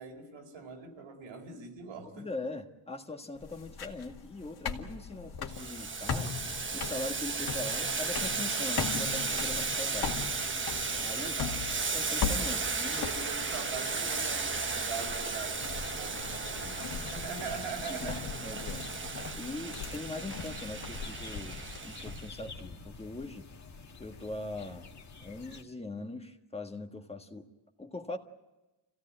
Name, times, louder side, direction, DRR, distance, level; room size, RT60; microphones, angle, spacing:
voice 1, 0.0-2.3 11.2-11.6 13.0-18.3, right 5 dB, 90° right, 4.4 m, -42 dB
voice 2, 2.1-6.5 6.7-10.2 10.9-11.4 11.9-13.1 17.9-18.1 18.4-18.9 19.3-23.4 24.0-24.9 25.2-27.5 27.8-28.2, left 2 dB, 15° left, 1.5 m, -41 dB
sound 1, 3.4-21.8, left 6 dB, 50° left, 2.1 m, -40 dB
Boiling, 5.5-22.3, right 4 dB, 25° right, 1.2 m, -35 dB
sound 2, 9.2-25.6, left 4 dB, 35° left, 1.9 m, -49 dB
27.0 x 16.5 x 8.6 m
cardioid pair, 140°, 47 cm